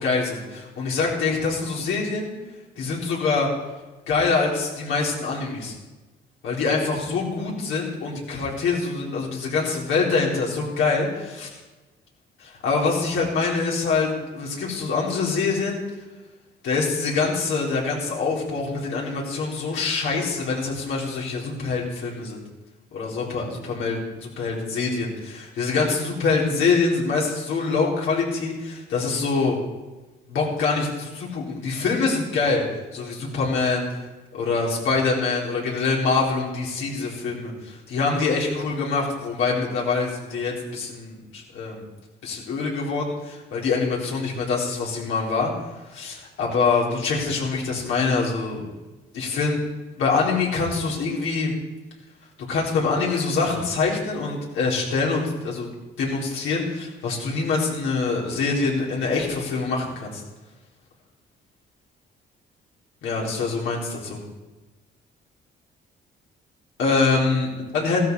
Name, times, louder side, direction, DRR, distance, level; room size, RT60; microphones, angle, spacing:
voice 1, 0.0-2.3 2.8-3.5 4.1-5.8 6.4-11.6 12.4-15.8 16.6-22.4 22.9-29.6 30.3-32.6 32.9-33.9 34.3-41.8 42.2-45.5 45.9-48.6 49.1-49.6 50.0-51.5 52.4-55.7 56.0-60.2 63.0-64.2 66.8-68.0, left 4 dB, 85° left, -3 dB, 4.0 m, -25 dB
15.0 x 13.0 x 4.7 m, 1.1 s
cardioid pair, 90°, 20 cm